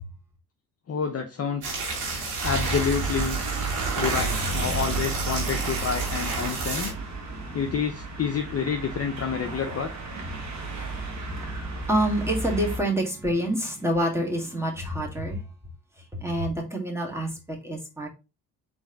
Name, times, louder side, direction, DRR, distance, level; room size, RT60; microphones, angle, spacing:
voice 1, 0.9-1.8 2.4-3.4 4.0-6.9 7.5-9.9, left 6 dB, 30° left, 0.8 m, -28 dB
sound 1, 1.6-6.9, right 3 dB, 80° right, 2.0 m, -30 dB
sound 2, 2.4-12.8, right 3 dB, 35° right, 1.4 m, -33 dB
voice 2, 6.6-7.0 7.3-7.7 10.3-15.4 16.2-18.1, right 1 dB, 5° right, 1.9 m, -28 dB
4.0 x 3.3 x 3.9 m
hypercardioid pair, 55°, 47 cm